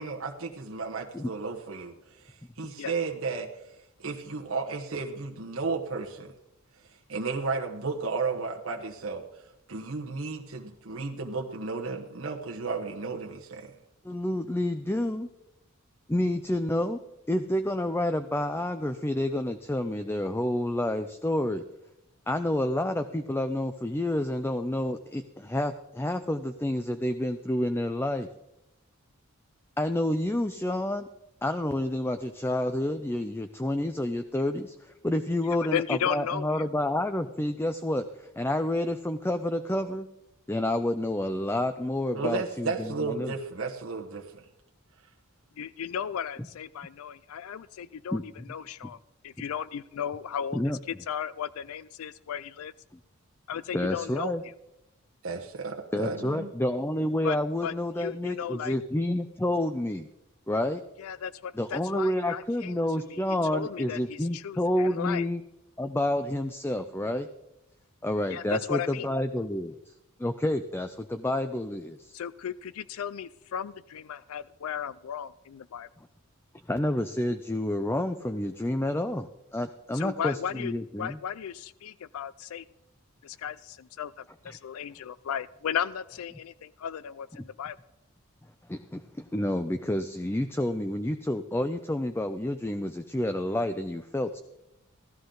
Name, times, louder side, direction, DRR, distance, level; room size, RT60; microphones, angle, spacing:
voice 1, 0.0-1.9 2.2-3.5 4.0-6.3 7.1-9.2 9.7-13.7 42.1-44.4 55.2-56.5, right 4 dB, 65° right, 1 dB, 1.1 m, -33 dB
voice 2, 14.0-15.3 16.1-17.0 17.3-21.6 22.3-28.3 29.8-31.1 31.4-40.1 40.5-43.3 48.1-48.2 50.5-50.8 53.7-54.4 55.9-60.1 60.5-60.8 61.6-65.4 65.8-67.3 68.0-69.9 70.2-72.1 76.7-81.2 84.5-84.6 88.7-94.4, left 1 dB, 10° left, 9 dB, 0.4 m, -29 dB
voice 3, 35.4-36.6 45.6-49.0 49.2-50.6 50.9-52.7 53.5-54.3 57.2-57.4 57.6-58.7 61.0-62.8 63.1-63.2 63.5-65.3 68.3-69.1 72.1-75.9 79.9-82.6 83.2-87.8, left 8 dB, 75° left, 16 dB, 0.4 m, -35 dB
16.0 x 13.0 x 3.9 m, 0.87 s
head